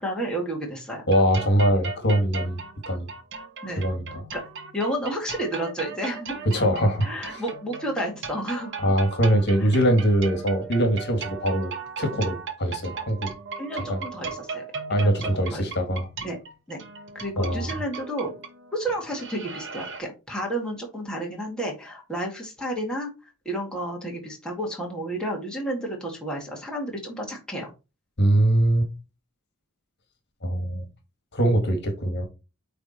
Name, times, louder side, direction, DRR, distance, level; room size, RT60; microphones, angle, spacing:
voice 1, 0.0-1.1 3.6-3.8 4.3-4.4 4.7-6.3 7.0-8.9 13.6-14.6 14.9-15.6 16.2-16.4 16.7-16.8 17.1-18.4 18.7-23.1 23.5-27.7, right 1 dB, 5° left, 2.1 m, -31 dB
voice 2, 1.1-3.1 3.7-4.2 6.5-7.4 8.8-11.7 12.0-13.3 13.9-14.0 14.9-16.1 17.4-17.7 28.2-28.9 30.4-30.9 31.3-32.3, right 1 dB, 55° left, 1.8 m, -22 dB
sound 1, 1.1-20.0, right 5 dB, 60° right, 1.2 m, -37 dB
8.9 x 3.5 x 4.3 m
head